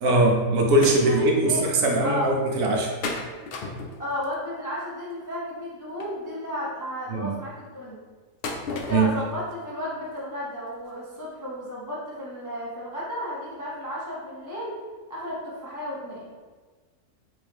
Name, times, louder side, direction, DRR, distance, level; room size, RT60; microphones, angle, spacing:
voice 1, 0.0-2.9 7.1-7.3 8.9-9.1, right 2 dB, 70° right, 0 dB, 1.0 m, -21 dB
sound 1, 0.8-1.0 1.5-1.6 1.8-1.9 3.0-4.3 6.0-6.1 8.4-9.2 9.5-9.6 10.2-10.3 10.8-10.9 11.1-11.2, left 3 dB, 85° left, 0.5 m, -32 dB
voice 2, 1.0-1.6 2.0-2.3 4.0-8.0 8.7-14.7 15.1-16.4, equal, 25° left, -7 dB, 0.4 m, -33 dB
3.8 x 2.6 x 3.4 m, 1.4 s
omnidirectional pair, 1.6 m